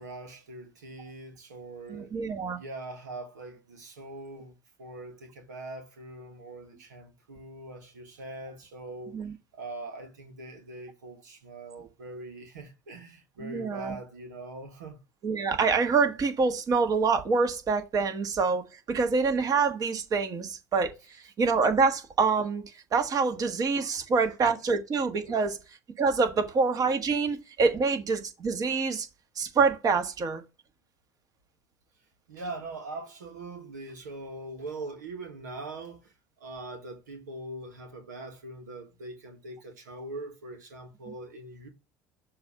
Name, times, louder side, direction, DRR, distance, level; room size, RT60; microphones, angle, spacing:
voice 1, 0.0-2.1 2.5-9.2 9.5-15.0 25.3-25.4 32.3-41.7, right 2 dB, 90° right, 1.2 m, -42 dB
voice 2, 1.9-2.6 9.1-9.3 13.4-13.9 15.2-20.9 21.4-22.6 22.9-25.6 26.0-29.1 29.4-30.4, right 4 dB, 40° right, 1.4 m, -26 dB
6.8 x 2.6 x 5.5 m
hypercardioid pair, 75°, 9 cm